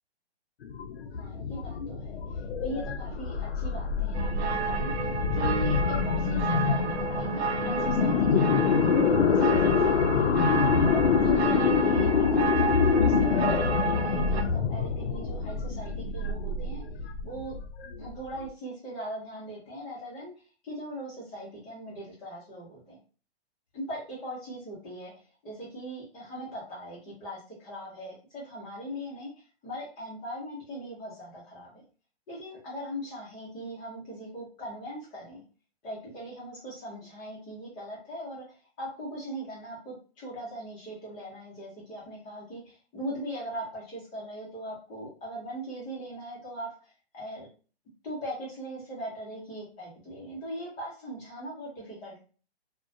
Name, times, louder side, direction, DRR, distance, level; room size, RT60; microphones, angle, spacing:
sound 1, 0.6-18.4, left 5 dB, 70° left, 0.5 m, -26 dB
voice 1, 1.2-10.7 11.2-16.8 17.2-17.5 18.0-20.3 20.6-23.0 23.7-29.3 29.6-31.8 32.3-35.4 35.8-47.5 48.0-52.2, equal, 10° left, -5 dB, 0.6 m, -40 dB
sound 2, 4.1-14.4, right 5 dB, 80° right, 0.5 m, -32 dB
2.3 x 2.1 x 2.5 m, 0.38 s
hypercardioid pair, 155°, 32 cm